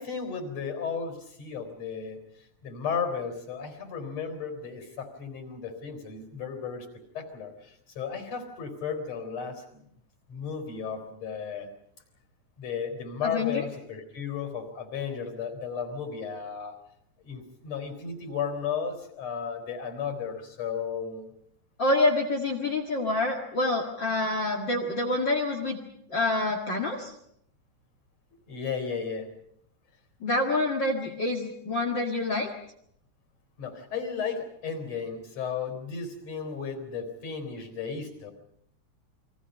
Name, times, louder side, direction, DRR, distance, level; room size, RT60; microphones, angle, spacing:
voice 1, 0.0-2.2 2.6-6.9 7.1-9.9 10.3-11.7 12.6-16.8 17.2-21.3 28.5-29.3 33.6-38.3, left 6 dB, 55° left, 7 dB, 5.0 m, -34 dB
voice 2, 13.2-13.6 21.8-25.8 26.1-27.1 30.2-32.5, left 2 dB, 40° left, 4 dB, 2.4 m, -27 dB
29.5 x 23.0 x 5.4 m, 0.70 s
omnidirectional pair, 3.5 m